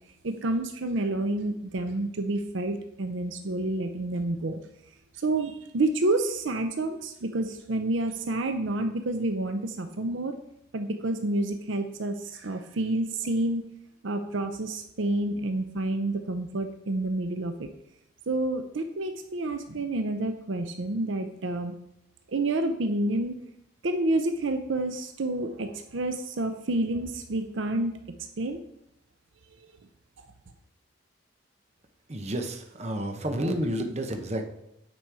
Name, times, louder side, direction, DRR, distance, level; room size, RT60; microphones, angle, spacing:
voice 1, 0.2-4.6 5.2-10.3 10.7-13.6 14.0-17.7 18.3-21.7 22.3-23.4 23.8-28.0 28.4-28.6, right 2 dB, 65° right, 7 dB, 0.6 m, -29 dB
voice 2, 32.1-34.4, right 1 dB, 35° right, 4 dB, 0.8 m, -30 dB
9.1 x 4.2 x 4.7 m, 0.79 s
head